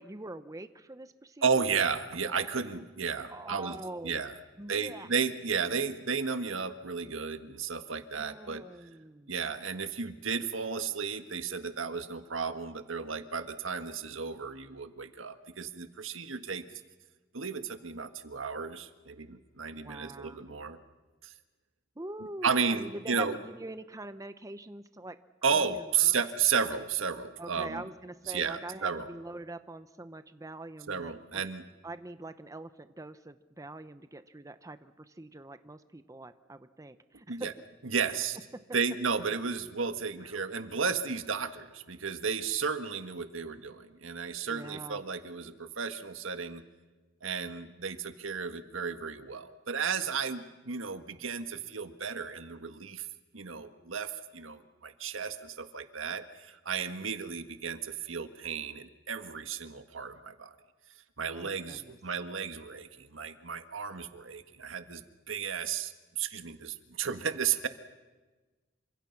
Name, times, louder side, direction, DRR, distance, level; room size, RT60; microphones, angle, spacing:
voice 1, 0.0-1.7 3.3-4.2 4.6-5.1 8.1-9.3 19.7-20.6 22.0-25.2 25.5-26.2 27.4-31.4 31.8-37.5 38.1-38.2 40.2-40.4 44.5-45.0 61.2-62.0, right 2 dB, 15° right, 11 dB, 0.8 m, -44 dB
voice 2, 1.4-3.7 4.0-4.3 4.7-8.6 9.3-16.6 17.3-20.8 21.2-21.3 22.4-23.4 25.4-27.8 28.3-29.0 30.9-31.6 37.3-37.5 37.9-38.4 38.7-46.6 47.2-53.1 53.3-60.5 61.2-67.7, right 6 dB, 85° right, 8 dB, 1.6 m, -33 dB
28.5 x 25.5 x 5.9 m, 1.2 s
head